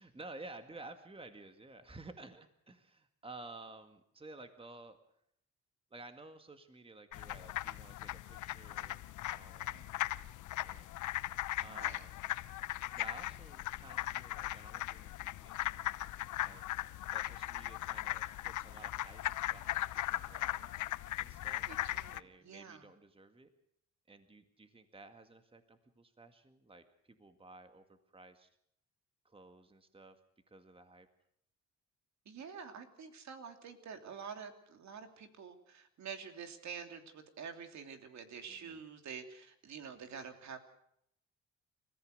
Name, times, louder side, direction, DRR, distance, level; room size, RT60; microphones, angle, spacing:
voice 1, 0.0-5.0 5.9-9.0 9.3-9.8 10.6-10.9 11.6-12.2 12.9-15.6 16.4-16.6 17.1-19.2 19.5-20.9 21.2-23.5 24.1-28.5 29.3-30.2 30.5-31.1 38.5-38.8, right 2 dB, 20° right, 8 dB, 1.9 m, -54 dB
sound 1, 7.1-22.2, left 15 dB, 80° left, 0.8 m, -38 dB
voice 2, 11.7-12.0 21.6-22.9 32.2-40.6, right 6 dB, 65° right, 6 dB, 3.0 m, -48 dB
29.5 x 15.0 x 6.6 m, 0.73 s
cardioid pair, 90°, 30 cm